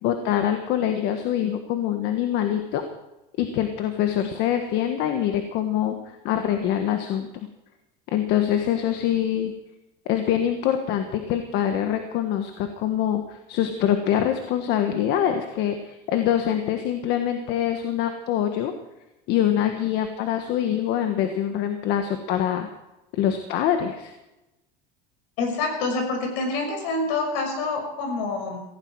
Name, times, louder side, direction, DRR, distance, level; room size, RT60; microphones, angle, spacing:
voice 1, 0.0-2.8 3.4-7.3 8.1-9.5 10.0-18.7 19.3-22.7 23.1-24.1, left 10 dB, 60° left, 6 dB, 1.5 m, -24 dB
voice 2, 25.4-28.6, left 3 dB, 75° left, 3 dB, 6.2 m, -27 dB
17.0 x 16.5 x 4.8 m, 0.96 s
cardioid pair, 145°, 20 cm